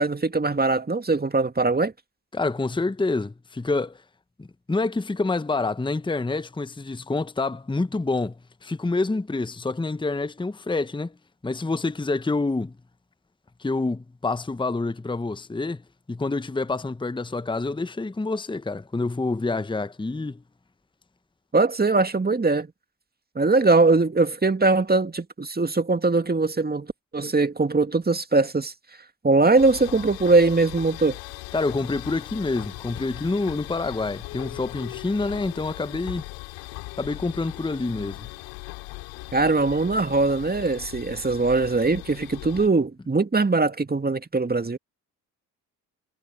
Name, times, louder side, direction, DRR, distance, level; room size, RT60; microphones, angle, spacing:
voice 1, 0.0-1.9 21.5-22.7 23.4-26.9 27.1-28.7 29.2-31.2 39.3-44.8, right 3 dB, 20° right, 2.2 m, -21 dB
voice 2, 2.3-4.0 4.4-11.1 11.4-12.7 13.6-15.8 16.1-20.4 31.5-36.2 37.0-38.3, left 3 dB, 10° left, 1.1 m, -27 dB
sound 1, 29.6-42.7, left 26 dB, 75° left, 5.6 m, -39 dB
hypercardioid pair, 45°, 44 cm